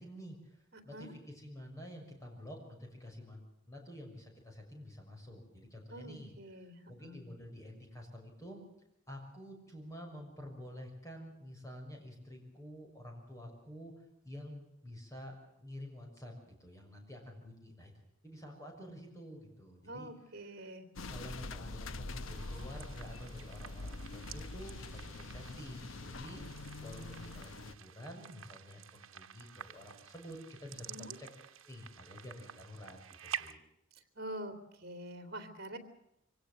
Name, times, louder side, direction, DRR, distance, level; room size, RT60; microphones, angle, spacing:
voice 1, 0.0-0.6 0.8-6.3 6.6-8.6 9.1-17.9 18.2-20.1 20.6-20.7 21.1-26.4 26.8-30.9 31.2-31.3 31.6-33.6, equal, 15° left, 2 dB, 6.4 m, -49 dB
voice 2, 0.7-1.1 5.9-7.2 19.8-20.9 30.9-31.1 34.2-35.8, right 1 dB, 50° right, 8 dB, 3.1 m, -46 dB
sound 1, 21.0-27.7, left 2 dB, 75° left, 0.9 m, -45 dB
sound 2, 22.3-33.5, right 9 dB, 85° right, 1.2 m, -49 dB
25.0 x 17.5 x 7.8 m, 0.79 s
head